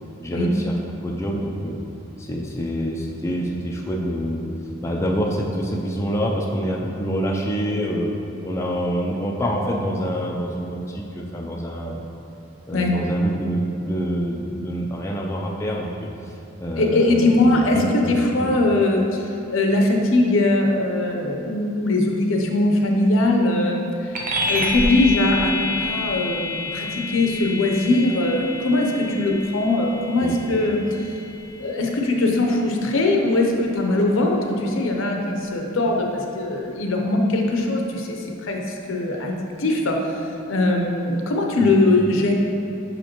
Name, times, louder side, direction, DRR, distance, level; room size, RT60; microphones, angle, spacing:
voice 1, 0.2-0.8 1.0-1.8 2.2-4.4 4.8-8.1 8.4-12.0 12.7-15.9 16.6-17.5 17.7-18.5 30.2-30.4 41.6-41.8, equal, 15° left, -2 dB, 0.4 m, -26 dB
voice 2, 12.7-13.1 16.8-19.2 19.5-23.9 24.5-30.8 31.6-40.1 40.5-42.3, left 2 dB, 70° left, 1 dB, 0.7 m, -21 dB
sound 1, 24.1-34.0, left 2 dB, 40° right, 0.6 m, -29 dB
6.5 x 5.1 x 2.9 m, 2.7 s
head